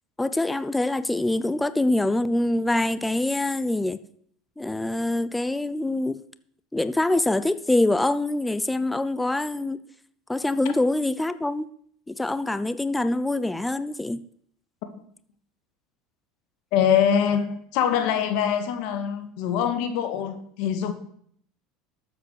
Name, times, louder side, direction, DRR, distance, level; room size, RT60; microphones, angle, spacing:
voice 1, 0.2-4.0 4.6-6.2 6.7-9.8 10.3-11.7 12.1-14.2, left 2 dB, 10° left, 0.6 m, -24 dB
voice 2, 16.7-20.9, left 8 dB, 65° left, 2.1 m, -24 dB
13.0 x 7.6 x 6.6 m
supercardioid pair, 100°, 0 cm